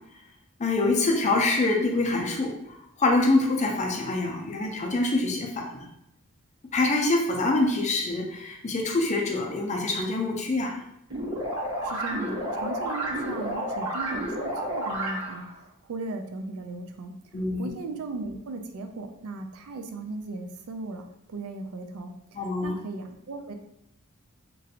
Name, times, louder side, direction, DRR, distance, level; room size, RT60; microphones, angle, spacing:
voice 1, 0.6-5.9 6.7-10.8 17.3-17.7 22.3-22.7, left 2 dB, 30° left, 1 dB, 0.5 m, -25 dB
Synth loop fade buff power rise magic pitch up, 11.1-15.5, right 1 dB, 90° right, 1.1 m, -31 dB
voice 2, 11.8-17.1 17.6-23.6, right 3 dB, 70° right, 5 dB, 0.4 m, -37 dB
3.0 x 2.5 x 2.7 m, 0.80 s
head